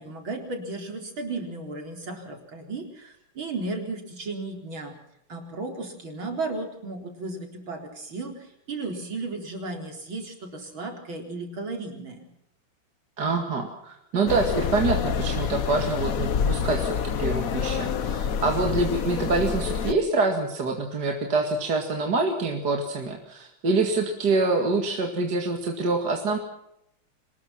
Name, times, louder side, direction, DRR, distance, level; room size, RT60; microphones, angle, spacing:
voice 1, 0.0-4.9 5.3-12.2, right 3 dB, 65° right, 3 dB, 4.9 m, -34 dB
voice 2, 13.2-26.4, right 3 dB, 50° right, 3 dB, 2.7 m, -26 dB
sound 1, 14.3-19.9, left 7 dB, 50° left, 1.1 m, -27 dB
25.0 x 20.0 x 5.9 m, 0.80 s
omnidirectional pair, 2.4 m